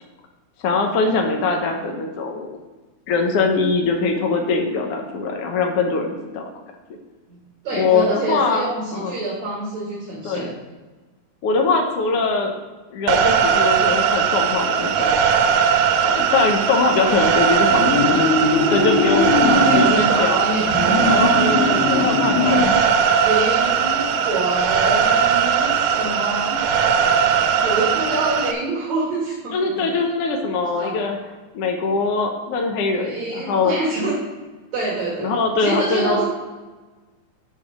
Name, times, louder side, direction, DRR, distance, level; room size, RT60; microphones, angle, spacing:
voice 1, 0.6-2.6 3.1-6.4 7.7-9.2 10.2-10.6 11.4-12.5 12.9-15.1 16.0-19.3 19.7-20.4 21.1-22.7 29.5-31.2 31.5-33.7 35.2-36.2, left 4 dB, 65° left, 2 dB, 1.6 m, -22 dB
voice 2, 7.3-10.5 16.9-17.4 19.4-21.1 23.2-26.7 27.6-29.9 30.8-31.0 32.9-34.1 34.7-35.3 35.6-36.2, right 2 dB, 65° right, -6 dB, 3.3 m, -26 dB
sound 1, 13.1-28.5, right 7 dB, 90° right, 2.1 m, -19 dB
sound 2, 17.7-20.0 20.6-22.8, left 4 dB, 85° left, 2.7 m, -20 dB
8.4 x 5.4 x 6.3 m, 1.2 s
omnidirectional pair, 3.4 m